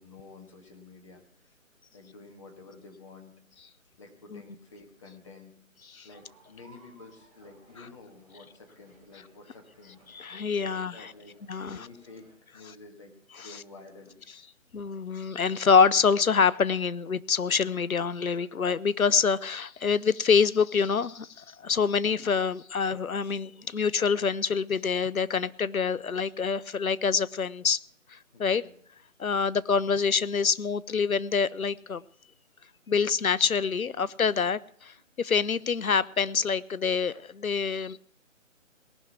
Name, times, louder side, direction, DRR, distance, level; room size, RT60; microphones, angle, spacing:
voice 1, 0.0-1.5 1.9-3.3 4.0-5.5 6.0-10.0 10.4-14.2 28.3-28.7, left 3 dB, 25° left, 1.7 m, -50 dB
sound 1, 6.1-12.4, right 3 dB, ahead, 3.1 m, -61 dB
voice 2, 10.1-11.1 11.5-11.9 13.4-13.5 14.7-27.8 28.1-28.6 29.2-32.0 32.9-38.0, left 5 dB, 85° left, 0.7 m, -26 dB
18.5 x 6.2 x 8.2 m
figure-of-eight pair, 155°, 41 cm